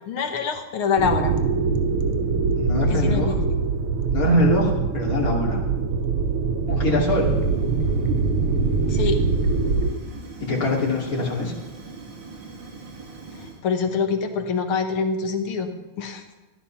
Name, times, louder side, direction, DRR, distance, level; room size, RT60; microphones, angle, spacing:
voice 1, 0.1-1.3 2.9-3.4 8.9-9.2 13.6-15.7 16.0-16.2, left 5 dB, 80° left, 5 dB, 2.1 m, -25 dB
sound 1, 1.0-9.9, right 4 dB, 90° right, 1.8 m, -23 dB
voice 2, 2.6-3.4 4.1-5.6 6.7-7.3 10.4-11.5, left 1 dB, 40° left, -2 dB, 3.1 m, -23 dB
Fire, 7.0-13.6, right 3 dB, 60° right, 2.8 m, -40 dB
14.0 x 10.5 x 5.7 m, 1.2 s
omnidirectional pair, 2.3 m